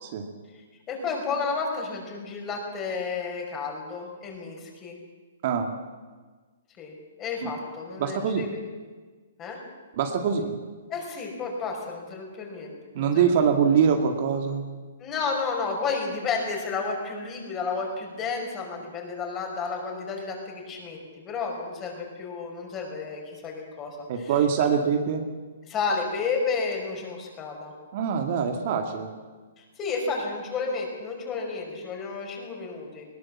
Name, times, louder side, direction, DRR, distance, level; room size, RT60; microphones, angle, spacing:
voice 1, 0.9-5.0 6.8-8.6 9.4-9.6 10.9-13.2 15.0-24.3 25.7-27.7 29.8-33.1, left 4 dB, 20° left, 1 dB, 5.4 m, -31 dB
voice 2, 8.0-8.5 10.0-10.6 12.9-14.6 24.1-25.2 27.9-29.1, right 7 dB, 45° right, 4 dB, 2.2 m, -24 dB
21.0 x 17.5 x 7.4 m, 1.4 s
hypercardioid pair, 150°, 0 cm